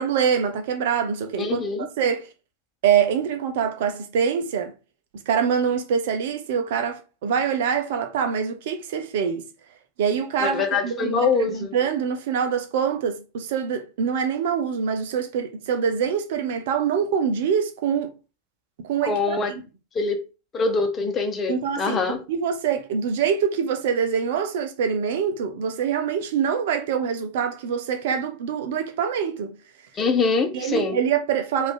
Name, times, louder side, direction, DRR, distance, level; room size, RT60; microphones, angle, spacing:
voice 1, 0.0-2.3 2.8-4.7 5.1-9.5 10.0-18.1 18.8-19.6 21.5-29.6 30.5-31.7, right 7 dB, 55° right, 0.7 m, -25 dB
voice 2, 1.4-1.9 10.4-11.7 19.0-19.5 19.9-20.2 20.5-22.2 30.0-30.9, left 4 dB, 25° left, 1.0 m, -24 dB
5.0 x 2.7 x 3.7 m
figure-of-eight pair, 90°, 0 cm